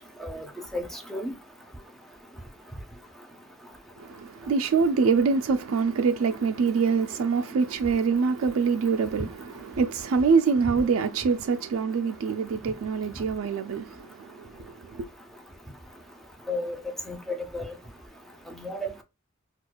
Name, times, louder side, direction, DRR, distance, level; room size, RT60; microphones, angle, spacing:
voice 1, 0.7-1.3 16.5-16.8 17.1-17.7 18.5-19.0, left 1 dB, ahead, 0.6 m, -33 dB
voice 2, 4.0-15.1, right 5 dB, 75° right, 0.3 m, -25 dB
4.3 x 2.4 x 2.3 m
head